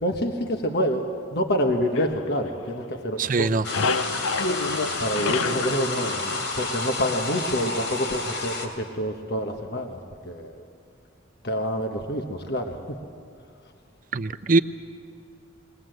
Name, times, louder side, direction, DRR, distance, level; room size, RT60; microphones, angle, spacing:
voice 1, 0.0-1.0 1.3-3.5 5.0-6.3 6.6-10.0 10.2-10.6 11.4-12.8, equal, 55° left, 3 dB, 1.2 m, -27 dB
sound 1, 1.9-3.1 3.4-7.1, left 3 dB, 90° left, 0.7 m, -29 dB
voice 2, 3.2-3.6 14.1-14.6, right 3 dB, 40° right, 10 dB, 0.6 m, -21 dB
sound 2, 3.6-8.7, left 3 dB, 75° left, 3.4 m, -30 dB
21.5 x 19.5 x 7.8 m, 2.5 s
head